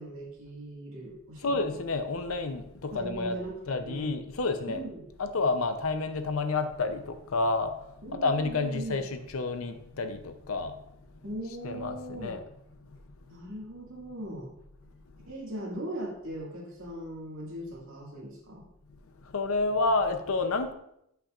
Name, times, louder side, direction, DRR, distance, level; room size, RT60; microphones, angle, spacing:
voice 1, 0.0-1.8 2.9-4.1 4.7-5.1 8.0-9.1 11.2-12.4 13.3-14.5 15.3-18.6, right 1 dB, 70° right, -4 dB, 2.1 m, -39 dB
voice 2, 1.4-3.4 3.7-4.8 5.2-7.7 8.2-10.7 11.6-12.4 19.3-20.7, left 3 dB, 75° left, 9 dB, 0.6 m, -29 dB
8.6 x 5.6 x 2.5 m, 0.78 s
head